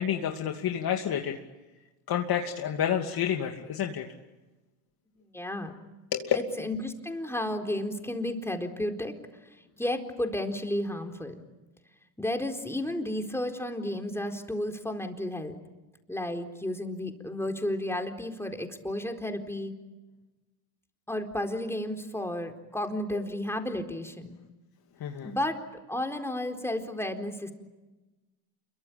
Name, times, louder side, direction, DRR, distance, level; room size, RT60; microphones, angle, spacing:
voice 1, 0.0-1.4 2.1-4.0 6.1-6.3 25.0-25.3, left 9 dB, 50° left, 2 dB, 2.7 m, -29 dB
voice 2, 5.2-5.7 6.3-9.1 9.7-11.4 12.2-15.5 16.1-19.7 21.1-24.4 25.2-25.6 25.9-27.5, left 1 dB, 5° left, 4 dB, 4.2 m, -32 dB
28.5 x 23.5 x 8.8 m, 1.1 s
supercardioid pair, 95°, 48 cm